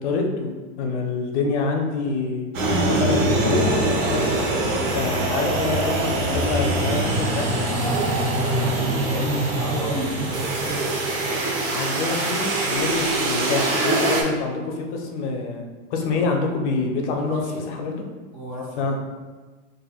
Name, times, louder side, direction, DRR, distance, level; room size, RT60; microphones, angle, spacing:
voice 1, 0.0-2.5 2.9-4.3 4.9-7.5 11.7-15.6 15.9-17.4 17.7-18.0 18.8-19.1, left 3 dB, 60° left, 2 dB, 0.6 m, -26 dB
sound 1, 2.5-14.2, right 2 dB, 80° right, 0.9 m, -23 dB
voice 2, 7.8-10.7 16.0-16.3 17.1-17.7 18.3-18.9, equal, 20° right, -7 dB, 0.5 m, -32 dB
4.2 x 2.6 x 2.3 m, 1.3 s
supercardioid pair, 180°, 39 cm